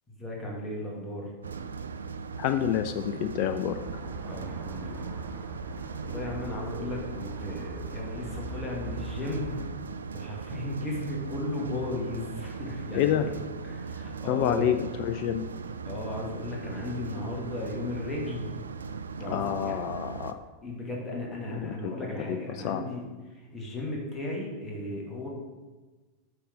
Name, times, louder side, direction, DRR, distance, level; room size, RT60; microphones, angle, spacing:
voice 1, 0.1-1.3 4.2-5.1 6.0-9.6 10.1-13.3 13.7-14.7 15.8-18.5 19.2-19.7 20.6-23.0 23.5-25.3, left 1 dB, 15° left, -3 dB, 2.1 m, -35 dB
sound 1, 1.4-20.3, right 5 dB, 70° right, 0.4 m, -38 dB
voice 2, 2.4-3.8 12.9-13.3 14.3-15.4 19.3-20.4 21.6-22.8, left 10 dB, 45° left, 8 dB, 0.4 m, -28 dB
sound 2, 3.6-9.7, equal, 40° right, 1.1 m, -43 dB
8.4 x 3.9 x 5.2 m, 1.3 s
figure-of-eight pair, 90°, 0 cm